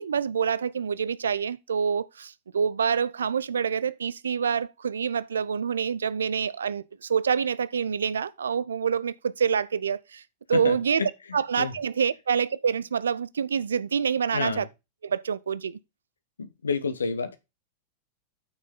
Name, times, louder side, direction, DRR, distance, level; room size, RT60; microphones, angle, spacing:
voice 1, 0.0-10.2 10.5-11.0 11.3-14.7 15.0-15.8, right 7 dB, 70° right, 0.5 m, -27 dB
voice 2, 10.5-11.7 14.3-14.7 16.4-17.4, left 5 dB, 75° left, 1.1 m, -30 dB
8.9 x 6.5 x 3.8 m
figure-of-eight pair, 90°, 0 cm